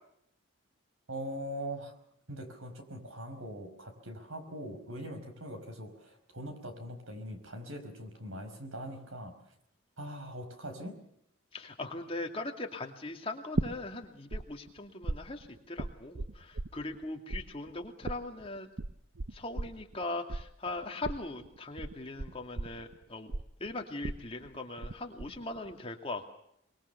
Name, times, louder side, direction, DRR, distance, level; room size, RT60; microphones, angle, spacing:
voice 1, 1.1-1.9 2.3-9.3 10.0-11.0, equal, 80° right, 7 dB, 5.2 m, -42 dB
voice 2, 11.5-18.7 19.3-23.3 23.6-26.4, left 2 dB, 25° left, 3 dB, 2.5 m, -40 dB
sound 1, 13.6-14.4 14.7-17.0 17.3-24.9 25.2-25.7, right 2 dB, 65° right, 0.8 m, -36 dB
24.0 x 22.5 x 6.9 m, 0.73 s
head